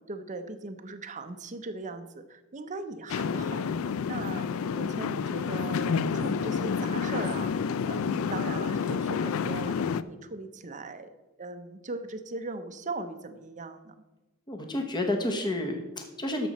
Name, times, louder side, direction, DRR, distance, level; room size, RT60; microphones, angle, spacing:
voice 1, 0.0-11.1 11.4-13.9, right 3 dB, 35° right, 9 dB, 0.7 m, -39 dB
sound 1, 3.1-10.0, left 6 dB, 70° left, 0.4 m, -29 dB
voice 2, 14.5-16.5, left 1 dB, 20° left, 4 dB, 1.1 m, -30 dB
13.5 x 6.2 x 4.2 m, 1.1 s
head